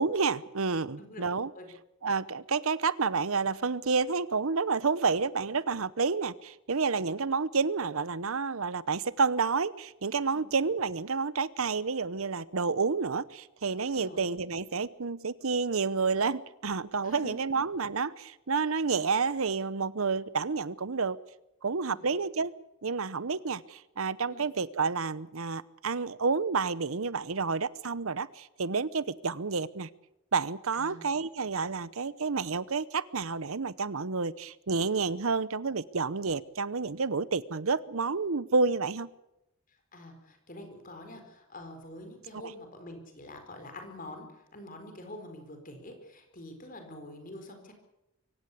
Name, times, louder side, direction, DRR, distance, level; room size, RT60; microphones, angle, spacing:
voice 1, 0.0-1.5 2.0-21.2 21.6-22.5 22.8-29.9 30.3-39.1 42.3-42.4, right 4 dB, 70° right, 18 dB, 0.8 m, -29 dB
voice 2, 39.9-47.7, left 1 dB, 40° left, 5 dB, 4.5 m, -46 dB
24.0 x 16.5 x 8.4 m, 0.89 s
head